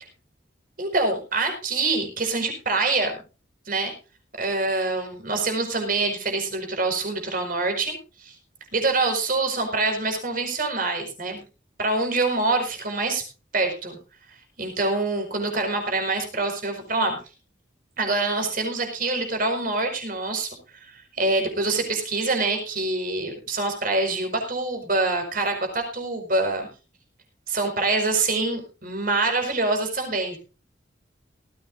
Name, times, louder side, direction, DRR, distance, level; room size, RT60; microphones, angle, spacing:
voice 1, 0.8-3.1 3.7-3.9 4.4-8.4 8.7-11.4 11.8-13.2 13.5-14.0 14.6-17.2 18.0-26.7 27.5-30.4, right 3 dB, 50° right, 4 dB, 5.0 m, -25 dB
18.5 x 15.0 x 2.6 m, 0.32 s
head